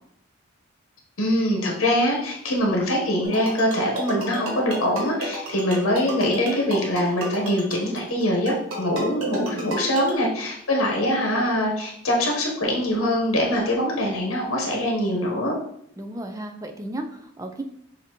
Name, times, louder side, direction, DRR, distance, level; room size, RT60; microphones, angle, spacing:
voice 1, 1.2-15.5, left 1 dB, 90° left, -1 dB, 1.1 m, -23 dB
sound 1, 3.2-10.1, right 2 dB, 80° right, 1.4 m, -32 dB
voice 2, 16.0-17.6, right 1 dB, 15° right, 5 dB, 0.4 m, -34 dB
6.3 x 2.8 x 3.0 m, 0.70 s
head